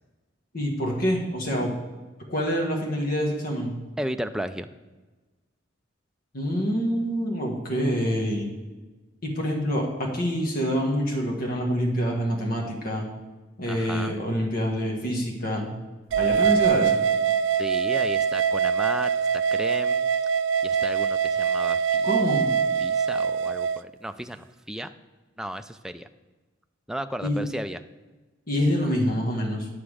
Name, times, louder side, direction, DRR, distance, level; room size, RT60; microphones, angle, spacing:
voice 1, 0.5-1.7 2.3-3.7 6.3-8.5 9.2-13.1 13.6-15.7 16.2-17.0 22.0-22.4 27.2-27.4 28.5-29.7, equal, 50° left, 0 dB, 1.5 m, -26 dB
voice 2, 4.0-4.7 13.7-14.2 17.6-20.1 20.6-22.1 22.8-24.9 25.4-26.1 26.9-27.8, right 1 dB, 5° right, 9 dB, 0.4 m, -34 dB
sound 1, 16.1-23.8, right 7 dB, 75° right, 0.3 m, -23 dB
9.4 x 7.0 x 4.9 m, 1.2 s
head